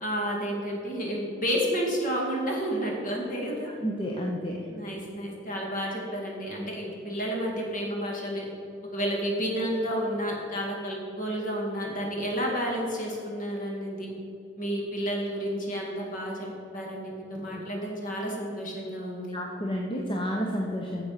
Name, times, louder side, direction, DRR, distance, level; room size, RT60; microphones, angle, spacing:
voice 1, 0.0-3.7 4.7-8.4 8.9-14.1 14.6-16.5 16.7-19.4, equal, 45° left, -2 dB, 2.1 m, -31 dB
voice 2, 3.8-4.7 19.3-21.1, equal, 25° left, -1 dB, 0.8 m, -30 dB
8.9 x 6.9 x 5.7 m, 2.7 s
head